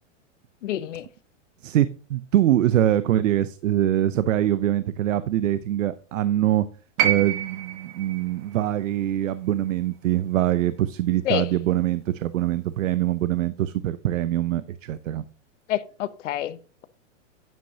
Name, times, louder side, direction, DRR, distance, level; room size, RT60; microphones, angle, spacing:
voice 1, 0.6-1.1 11.2-11.5 15.7-16.9, left 12 dB, 75° left, 0.8 m, -28 dB
voice 2, 1.6-6.6 7.0-15.2, right 12 dB, 90° right, 0.6 m, -23 dB
sound 1, 7.0-11.2 12.3-12.4, right 11 dB, 40° right, 1.1 m, -30 dB
8.9 x 7.9 x 2.8 m
hypercardioid pair, 155°, 37 cm